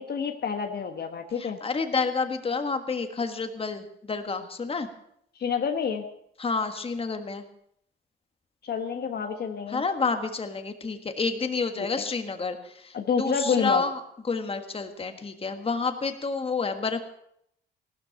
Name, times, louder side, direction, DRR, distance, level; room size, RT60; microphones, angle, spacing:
voice 1, 0.0-1.6 5.4-6.1 8.6-9.8 11.8-12.0 12.9-13.8, left 6 dB, 55° left, 6 dB, 1.4 m, -28 dB
voice 2, 1.4-4.9 6.4-7.4 9.7-14.0 14.3-17.0, left 4 dB, 30° left, 7 dB, 1.6 m, -29 dB
15.5 x 12.5 x 5.8 m, 0.73 s
cardioid pair, 90°, 20 cm